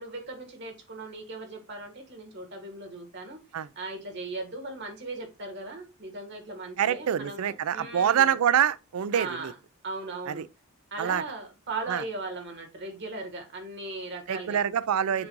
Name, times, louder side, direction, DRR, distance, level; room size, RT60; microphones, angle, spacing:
voice 1, 0.0-3.4 3.8-8.3 9.1-9.6 9.8-10.5 10.9-14.6 15.1-15.3, right 3 dB, 55° right, 1.6 m, -38 dB
voice 2, 6.8-9.5 10.3-10.5 11.0-11.2 11.9-12.0 14.3-15.3, right 9 dB, 85° right, 0.4 m, -26 dB
7.0 x 2.6 x 5.3 m
head